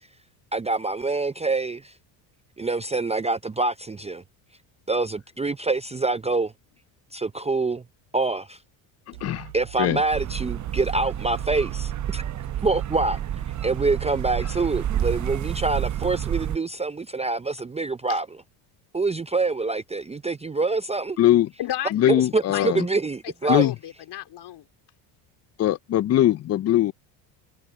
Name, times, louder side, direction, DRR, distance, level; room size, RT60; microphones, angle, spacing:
voice 1, 0.5-1.9 2.6-4.2 4.9-6.5 7.1-7.8 8.1-8.6 9.5-12.2 12.6-13.2 13.6-18.3 18.9-21.2 22.3-23.7, right 3 dB, 15° right, 0.6 m, -26 dB
voice 2, 9.1-9.5 9.8-10.0 14.4-14.6 21.2-21.5 21.9-22.9 23.5-23.7 25.6-26.9, left 13 dB, 35° left, 0.4 m, -21 dB
sound 1, 9.1-15.5, right 20 dB, 90° right, 6.0 m, -42 dB
sound 2, 10.1-16.6, right 10 dB, 35° right, 0.9 m, -29 dB
voice 3, 21.6-22.1 22.5-22.8 23.2-24.7, left 12 dB, 55° left, 3.4 m, -33 dB
supercardioid pair, 80°, 49 cm